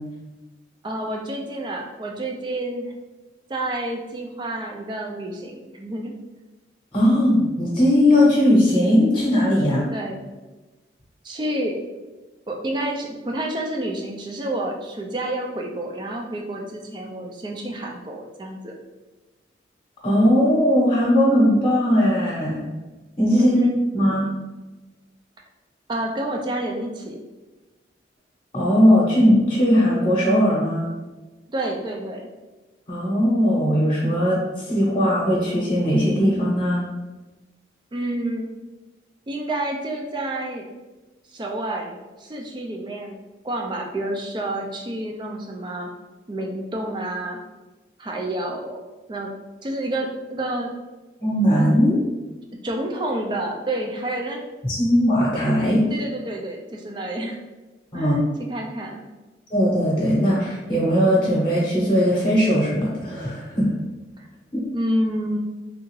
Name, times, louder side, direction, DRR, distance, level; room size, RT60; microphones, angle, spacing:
voice 1, 0.8-2.9 3.5-6.1 9.8-10.3 11.2-11.8 12.5-18.7 23.4-23.7 25.9-27.2 31.5-32.3 37.9-38.5 39.3-40.7 41.3-45.9 46.3-47.4 48.0-48.8 49.1-49.3 49.6-50.7 52.6-54.4 55.9-57.4 57.9-58.2 58.5-59.0 64.2-64.3 64.7-65.4, right 1 dB, 25° right, 1 dB, 0.4 m, -29 dB
voice 2, 6.9-9.8 20.0-22.6 23.2-23.6 23.9-24.3 28.5-30.9 32.9-36.8 51.2-52.0 54.6-55.9 57.9-58.2 59.5-63.7 64.5-64.6, equal, 30° left, -7 dB, 0.8 m, -19 dB
3.4 x 2.4 x 3.1 m, 1.2 s
head